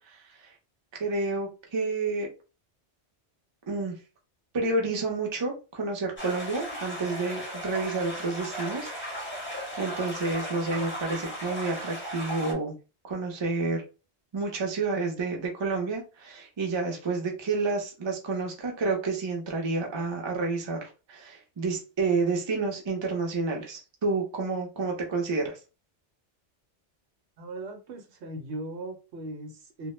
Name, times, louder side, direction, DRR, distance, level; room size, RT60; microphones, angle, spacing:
voice 1, 0.9-2.3 3.7-4.0 4.5-12.7 13.0-13.8 14.3-25.6, right 3 dB, 35° right, 0.5 m, -30 dB
sound 1, 6.2-12.5, equal, 15° left, 0.6 m, -36 dB
voice 2, 27.4-29.9, right 1 dB, 75° right, 0.9 m, -39 dB
2.1 x 2.1 x 3.0 m
omnidirectional pair, 1.1 m